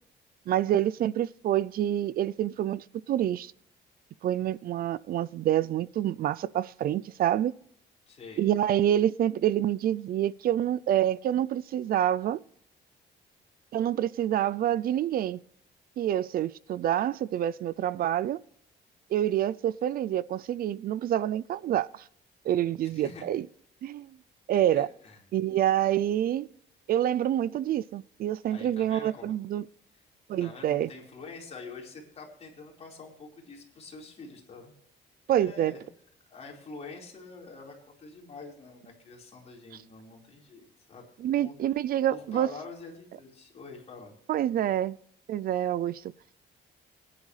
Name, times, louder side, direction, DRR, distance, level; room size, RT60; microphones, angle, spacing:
voice 1, 0.5-3.5 4.2-7.5 8.4-12.4 13.7-15.4 16.0-18.4 19.1-22.0 22.4-23.5 23.8-24.1 24.5-24.9 25.3-26.5 26.9-29.7 30.3-30.9 35.3-35.7 41.2-42.5 44.3-45.0 45.3-46.0, right 11 dB, 50° right, 0.4 m, -27 dB
voice 2, 8.1-8.4 22.8-23.3 24.7-25.2 28.5-29.3 30.4-34.7 35.4-35.8 36.3-41.0 41.4-41.5 42.1-44.1, left 4 dB, 35° left, 4.6 m, -46 dB
22.0 x 11.0 x 3.3 m
cardioid pair, 150°, 19 cm